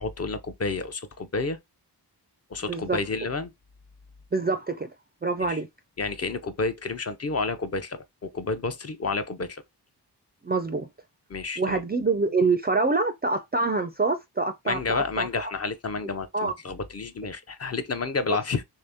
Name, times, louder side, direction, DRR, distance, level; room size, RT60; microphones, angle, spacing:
voice 1, 0.0-1.6 2.5-3.5 5.4-5.6 6.0-9.6 11.3-11.8 14.7-18.6, left 4 dB, 35° left, 0.5 m, -30 dB
voice 2, 4.3-4.9 5.2-5.7 10.4-10.9 11.6-15.5 16.3-16.5 18.3-18.4, right 3 dB, 25° right, 0.3 m, -26 dB
3.3 x 2.8 x 3.4 m
wide cardioid pair, 85°, 41 cm